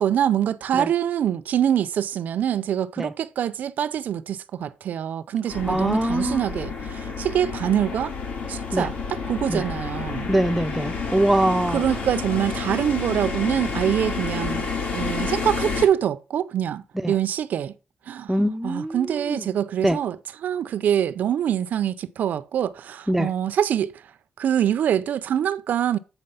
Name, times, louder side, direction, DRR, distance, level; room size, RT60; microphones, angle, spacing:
voice 1, 0.0-8.1 8.5-10.3 11.7-14.7 14.9-17.7 18.1-18.3 18.6-20.2 20.4-23.9 24.4-26.0, right 9 dB, 70° right, 0.6 m, -24 dB
sound 1, 5.5-15.9, left 5 dB, 60° left, 1.9 m, -30 dB
voice 2, 5.7-6.4 8.7-8.9 9.5-9.7 10.3-11.8 16.9-17.2 18.3-19.5 19.8-20.0 23.1-23.3, right 1 dB, 5° right, 0.5 m, -23 dB
8.9 x 4.1 x 5.6 m
wide cardioid pair, 155°, 3 cm